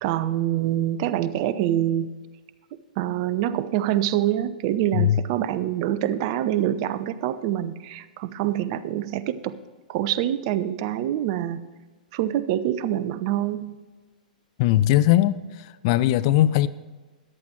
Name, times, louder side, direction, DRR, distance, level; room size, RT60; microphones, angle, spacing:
voice 1, 0.0-2.1 3.0-9.6 9.9-11.6 12.1-13.8, right 12 dB, 40° right, 15 dB, 0.6 m, -25 dB
voice 2, 14.6-15.4 15.8-16.7, left 13 dB, 40° left, 15 dB, 0.5 m, -19 dB
14.0 x 10.5 x 4.4 m, 1.3 s
figure-of-eight pair, 105°, 5 cm